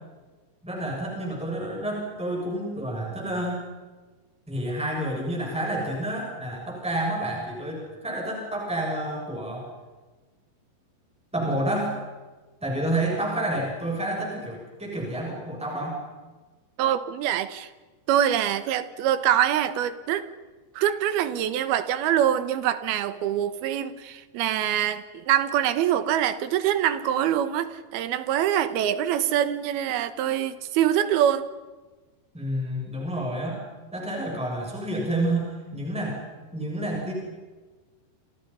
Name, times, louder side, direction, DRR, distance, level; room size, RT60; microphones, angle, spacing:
voice 1, 0.6-3.6 4.5-9.6 11.3-11.9 12.6-16.0 32.3-33.6 33.9-36.2 36.5-37.1, right 1 dB, ahead, -1 dB, 6.8 m, -29 dB
voice 2, 16.8-17.7 18.1-20.3 20.8-31.5, right 10 dB, 75° right, 13 dB, 3.0 m, -24 dB
29.0 x 28.5 x 5.7 m, 1.3 s
omnidirectional pair, 4.6 m